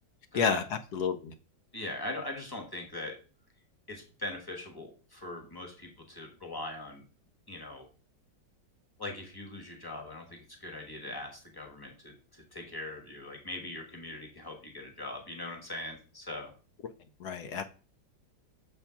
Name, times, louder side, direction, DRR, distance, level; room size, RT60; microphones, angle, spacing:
voice 1, 0.9-1.3 17.2-17.7, left 6 dB, 70° left, 1.0 m, -29 dB
voice 2, 1.7-3.2 3.9-7.0 7.5-7.9 9.0-16.5, left 1 dB, 15° left, 1.1 m, -40 dB
7.0 x 3.5 x 5.7 m
omnidirectional pair, 2.0 m